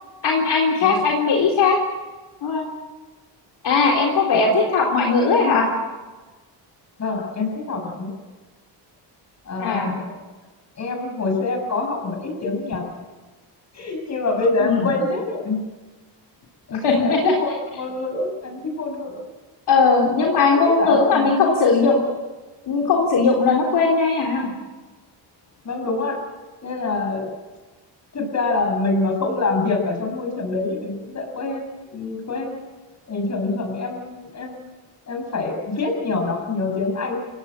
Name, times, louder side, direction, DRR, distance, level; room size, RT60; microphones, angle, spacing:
voice 1, 0.2-1.8 2.4-2.7 3.6-5.7 9.6-9.9 14.6-14.9 16.7-17.3 19.7-22.0 22.7-24.5, left 4 dB, 65° left, 0 dB, 3.6 m, -18 dB
voice 2, 7.0-8.1 9.4-10.2 10.8-12.9 13.7-15.6 16.7-19.2 20.2-21.3 25.6-26.2 26.6-27.3 28.1-32.6 33.1-34.6 35.1-37.2, left 3 dB, 40° left, 4 dB, 6.5 m, -25 dB
27.5 x 16.5 x 8.8 m, 1.3 s
cardioid pair, 155°, 44 cm